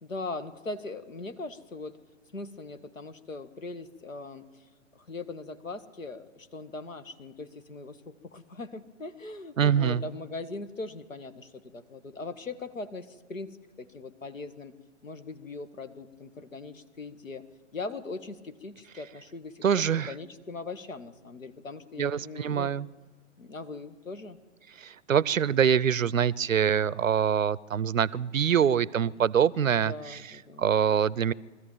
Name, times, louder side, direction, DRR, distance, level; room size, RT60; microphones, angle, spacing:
voice 1, 0.0-2.0 2.3-4.5 4.9-14.7 15.0-17.4 17.7-22.8 23.4-24.4 29.6-30.7, left 3 dB, 75° left, 11 dB, 1.7 m, -40 dB
voice 2, 9.6-10.0 19.6-20.1 22.0-22.9 24.8-30.2 30.6-31.3, right 8 dB, 80° right, 23 dB, 0.6 m, -25 dB
22.5 x 14.0 x 8.9 m, 1.4 s
figure-of-eight pair, 125°, 39 cm